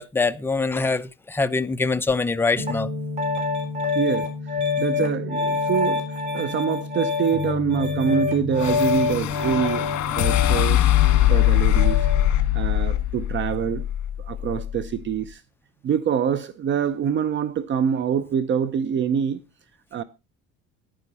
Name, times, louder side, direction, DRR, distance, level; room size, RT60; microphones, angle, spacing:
voice 1, 0.0-2.9, left 3 dB, 5° left, 0.5 m, -24 dB
Piano, 2.6-12.3, left 4 dB, 20° right, 4.0 m, -26 dB
voice 2, 3.9-4.3 4.8-12.0 12.5-13.8 14.2-15.4 15.8-19.4 19.9-20.0, right 8 dB, 40° right, 0.6 m, -25 dB
sound 1, 8.6-14.9, left 13 dB, 60° left, 1.7 m, -22 dB
10.0 x 9.8 x 4.2 m
cardioid pair, 150°, 31 cm